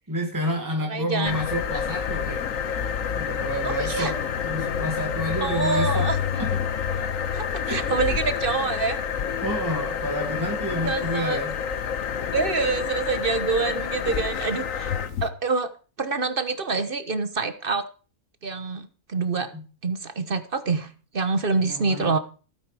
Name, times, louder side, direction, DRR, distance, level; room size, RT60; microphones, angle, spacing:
voice 1, 0.1-2.5 3.1-4.2 4.4-6.5 7.0-7.1 7.6-8.2 9.4-11.6 19.5-19.6 21.6-22.2, equal, 15° right, 2 dB, 1.8 m, -29 dB
voice 2, 0.9-1.4 3.6-4.1 5.4-6.2 7.3-9.0 10.8-11.4 12.3-15.0 15.2-15.7 16.0-17.9 18.4-19.5 19.8-22.2, right 4 dB, 45° right, 11 dB, 1.2 m, -26 dB
sound 1, 1.2-15.3, left 7 dB, 85° left, 1.4 m, -28 dB
16.0 x 9.1 x 4.8 m, 0.37 s
omnidirectional pair, 1.3 m